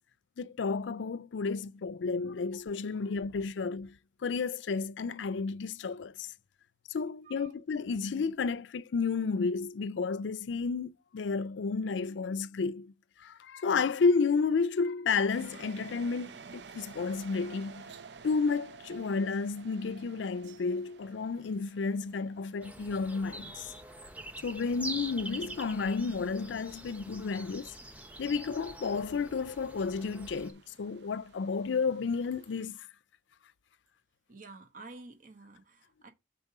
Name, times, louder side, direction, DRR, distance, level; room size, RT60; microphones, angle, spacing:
voice 1, 0.4-6.3 6.9-12.9 13.2-17.9 18.2-23.7 24.4-27.7 28.2-32.9, left 4 dB, 85° left, 0.4 m, -32 dB
sound 1, 15.3-32.7, right 5 dB, 70° right, 0.6 m, -54 dB
sound 2, 22.6-30.5, right 1 dB, 10° right, 0.9 m, -45 dB
voice 2, 34.3-36.1, right 3 dB, 45° right, 1.2 m, -50 dB
6.6 x 4.4 x 4.7 m
head